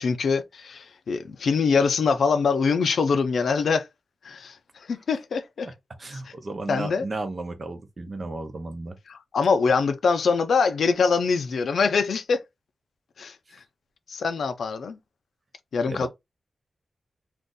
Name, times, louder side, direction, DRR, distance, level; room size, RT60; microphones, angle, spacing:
voice 1, 0.0-3.9 4.2-4.6 4.9-5.7 6.7-7.0 9.1-12.4 13.2-13.3 14.1-15.0 15.7-16.1, left 5 dB, 80° left, 0.5 m, -23 dB
voice 2, 6.0-9.0 15.9-16.1, right 2 dB, 40° right, 0.7 m, -34 dB
2.6 x 2.5 x 3.7 m
wide cardioid pair, 120°, 0 cm